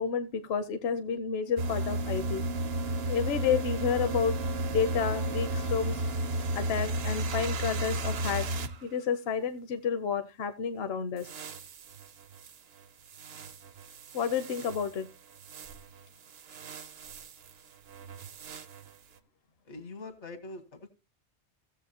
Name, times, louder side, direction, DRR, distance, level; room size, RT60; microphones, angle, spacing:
voice 1, 0.0-2.4 3.1-4.3 4.7-6.0 6.6-8.4 8.8-11.3 14.1-15.1, left 6 dB, 65° left, 9 dB, 0.9 m, -30 dB
sound 1, 1.6-8.7 11.2-12.5 13.1-15.0 15.4-15.8 16.3-17.5 17.9-18.9, right 1 dB, 65° right, 0.9 m, -33 dB
voice 2, 19.6-20.9, left 2 dB, 80° left, 9 dB, 1.8 m, -43 dB
16.0 x 7.1 x 2.8 m, 0.29 s
omnidirectional pair, 1.2 m